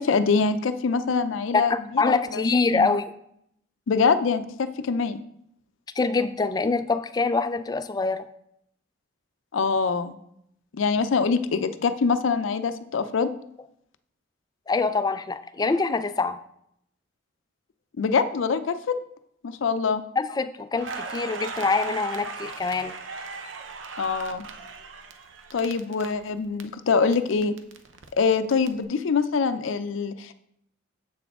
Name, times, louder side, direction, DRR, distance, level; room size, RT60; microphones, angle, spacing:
voice 1, 0.0-2.4 2.7-2.9 3.9-5.2 9.5-10.2 10.7-13.3 18.0-19.0 19.4-20.0 24.0-24.4 25.5-27.5 28.2-30.3, left 5 dB, 80° left, 11 dB, 0.5 m, -24 dB
voice 2, 1.5-3.0 6.0-8.3 14.7-16.4 20.2-22.9, left 4 dB, 20° left, 12 dB, 0.3 m, -25 dB
Crackle, 20.8-26.6 26.9-28.7, right 4 dB, 75° right, 0.6 m, -38 dB
7.7 x 6.0 x 3.6 m, 0.74 s
head